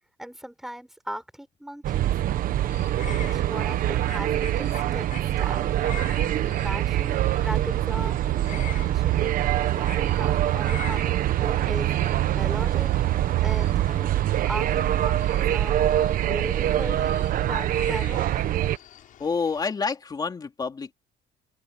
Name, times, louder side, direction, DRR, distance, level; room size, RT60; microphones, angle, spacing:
voice 1, 0.2-2.1 3.1-5.7 6.4-9.3 9.7-12.0 12.3-12.9 13.4-14.1 14.4-15.8 16.3-18.3, right 1 dB, ahead, 4.4 m, -38 dB
sound 1, 1.8-18.8, right 13 dB, 55° right, 1.2 m, -24 dB
sound 2, 2.7-19.7, left 11 dB, 50° left, 7.6 m, -46 dB
voice 2, 19.2-20.9, left 5 dB, 20° left, 3.0 m, -28 dB
cardioid pair, 145°, 18 cm